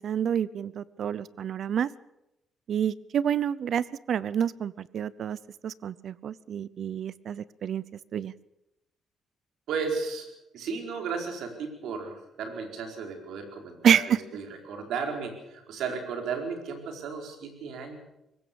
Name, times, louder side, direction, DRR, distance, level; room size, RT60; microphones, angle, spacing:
voice 1, 0.0-1.9 2.7-5.4 5.6-7.8 8.1-8.3 13.8-14.0, right 8 dB, 60° right, 20 dB, 0.7 m, -28 dB
voice 2, 9.7-10.3 10.5-18.0, right 5 dB, 80° right, 4 dB, 4.6 m, -34 dB
22.0 x 19.0 x 7.1 m, 0.89 s
cardioid pair, 90°, 0 cm